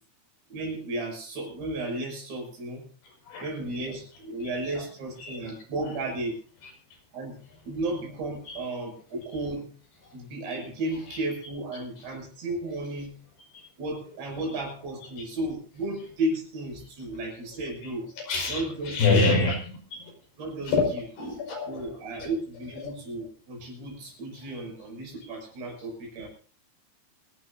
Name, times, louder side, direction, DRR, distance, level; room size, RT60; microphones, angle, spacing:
voice 1, 0.5-2.8 3.4-6.4 7.1-7.4 7.6-9.7 10.1-13.1 13.8-18.1 18.5-19.4 20.4-21.0 21.7-26.3, right 2 dB, 65° right, 0 dB, 8.8 m, -34 dB
voice 2, 4.4-4.8 5.2-5.4 6.6-6.7 8.5-8.6 11.1-11.2 13.5-13.6 18.3-19.6 19.9-20.1 20.7-20.9 21.2-22.3 22.8-22.9, left 3 dB, 65° left, 1 dB, 7.6 m, -27 dB
28.0 x 12.5 x 2.7 m, 0.41 s
omnidirectional pair, 5.2 m